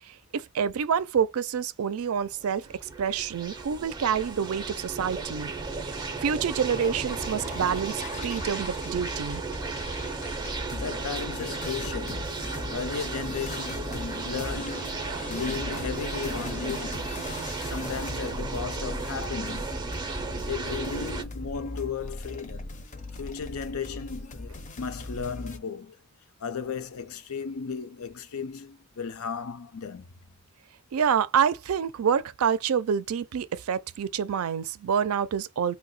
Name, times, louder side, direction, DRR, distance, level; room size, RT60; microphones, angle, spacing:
voice 1, 0.1-5.5 5.8-5.9 6.2-9.4 30.9-35.8, right 7 dB, 85° right, 0.4 m, -27 dB
sound 1, 2.1-21.2, right 3 dB, 20° right, 0.5 m, -34 dB
sound 2, 6.7-25.6, left 2 dB, 35° left, 0.5 m, -40 dB
voice 2, 10.4-17.2 17.6-19.9 20.3-22.7 23.1-26.0 26.4-30.1, left 6 dB, 90° left, 0.6 m, -35 dB
2.8 x 2.1 x 4.0 m
head